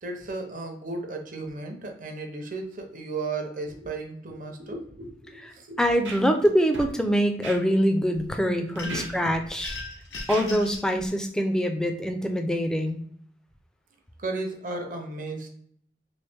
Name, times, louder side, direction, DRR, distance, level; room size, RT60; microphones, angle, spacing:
voice 1, 0.0-5.8 8.8-9.2 14.2-15.5, right 3 dB, 45° right, 3 dB, 0.7 m, -35 dB
voice 2, 5.8-9.8 10.3-13.0, equal, 5° left, 5 dB, 0.3 m, -24 dB
Scratching (performance technique), 5.9-6.5 6.7-6.9 7.4-7.6 8.1-8.3 8.8-9.8 10.1-10.5 11.0-11.1, right 3 dB, 85° right, 0.7 m, -38 dB
sound 1, 8.8-9.2 9.6-10.9, left 3 dB, 85° left, 1.2 m, -38 dB
3.1 x 2.9 x 3.3 m, 0.65 s
head